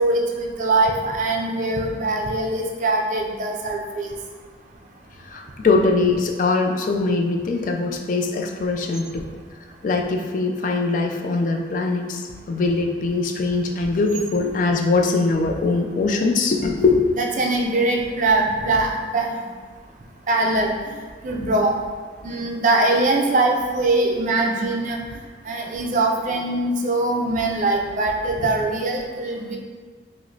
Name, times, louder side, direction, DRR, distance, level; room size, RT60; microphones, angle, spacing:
voice 1, 0.0-4.1 17.2-19.4 20.3-20.7 21.2-21.7 22.2-25.0 25.5-29.6, right 2 dB, 45° right, 0 dB, 0.4 m, -22 dB
voice 2, 5.3-9.2 9.8-17.1, left 3 dB, 45° left, 2 dB, 0.3 m, -22 dB
4.8 x 2.0 x 2.6 m, 1.5 s
head